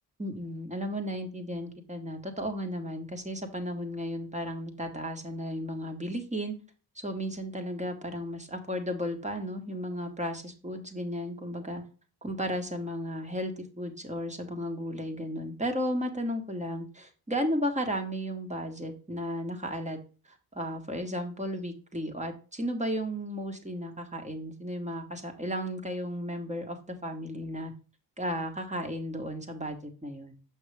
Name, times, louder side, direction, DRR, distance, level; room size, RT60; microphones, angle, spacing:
voice 1, 0.2-6.5 6.9-11.8 12.2-20.0 20.5-27.7 28.2-30.4, equal, 15° right, 4 dB, 1.6 m, -34 dB
6.4 x 5.7 x 3.4 m, 0.35 s
supercardioid pair, 50°, 41 cm